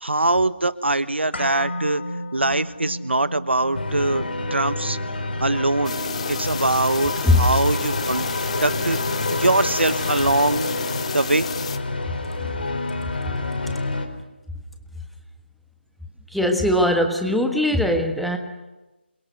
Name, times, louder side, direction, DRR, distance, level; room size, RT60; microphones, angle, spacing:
voice 1, 0.0-2.0 2.3-4.2 4.5-5.0 5.4-5.9 6.3-8.2 8.6-9.0 9.3-10.7 11.1-11.5, right 2 dB, 75° right, 14 dB, 1.2 m, -22 dB
sound 1, 1.3-9.4 9.7-9.8, left 1 dB, 85° left, 5.6 m, -37 dB
sound 2, 3.7-14.1, left 2 dB, 60° left, 4.6 m, -28 dB
sound 3, 5.8-11.8, left 6 dB, 35° left, 1.3 m, -32 dB
voice 2, 16.3-18.4, left 1 dB, ahead, 4 dB, 1.3 m, -20 dB
28.5 x 22.5 x 6.6 m, 1.1 s
figure-of-eight pair, 155°, 6 cm